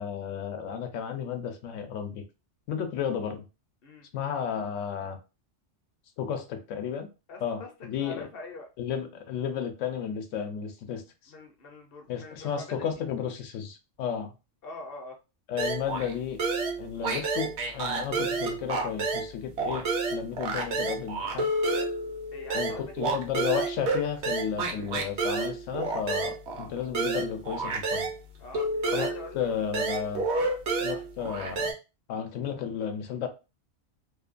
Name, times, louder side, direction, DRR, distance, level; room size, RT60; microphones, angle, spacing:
voice 1, 0.0-2.2 2.7-3.4 4.1-5.2 6.2-7.1 7.4-8.3 8.8-11.3 12.1-14.3 15.5-16.4 16.8-21.5 22.5-28.1 28.9-30.2 30.8-31.7 32.1-33.3, left 8 dB, 85° left, 0.9 m, -33 dB
voice 2, 7.3-7.7 8.0-8.7 11.3-12.8 14.6-15.2 22.3-22.9 26.1-26.4 28.4-29.5 31.0-31.1, left 2 dB, 60° left, 0.7 m, -44 dB
sound 1, 15.6-16.1 16.4-19.3 19.6-28.2 28.5-31.7, right 3 dB, 65° right, 0.9 m, -30 dB
2.7 x 2.1 x 2.4 m
omnidirectional pair, 1.3 m